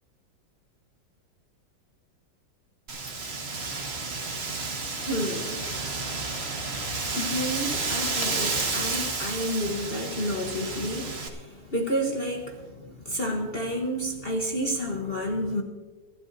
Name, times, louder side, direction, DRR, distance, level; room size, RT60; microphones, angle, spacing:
Wind, 2.9-11.3, right 3 dB, 35° right, 1.6 m, -31 dB
voice 1, 4.9-6.0 6.3-15.6, equal, 35° left, 1 dB, 1.2 m, -31 dB
25.5 x 12.5 x 2.7 m, 1.3 s
omnidirectional pair, 2.1 m